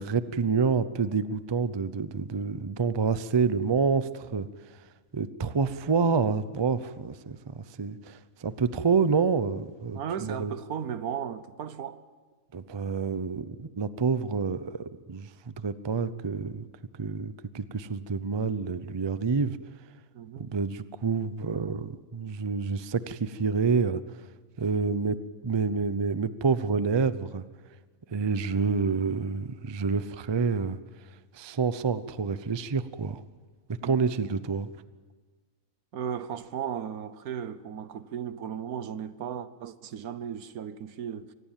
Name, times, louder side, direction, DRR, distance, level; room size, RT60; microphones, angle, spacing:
voice 1, 0.0-4.7 5.1-10.5 12.5-16.7 17.0-19.6 20.4-24.2 24.6-27.4 28.1-30.8 31.3-33.2 33.8-34.7, right 5 dB, 30° right, 0.4 m, -28 dB
voice 2, 9.9-12.0 20.1-20.5 33.8-34.1 35.9-41.3, right 8 dB, 85° right, 1.4 m, -36 dB
24.5 x 19.5 x 7.4 m
omnidirectional pair, 1.5 m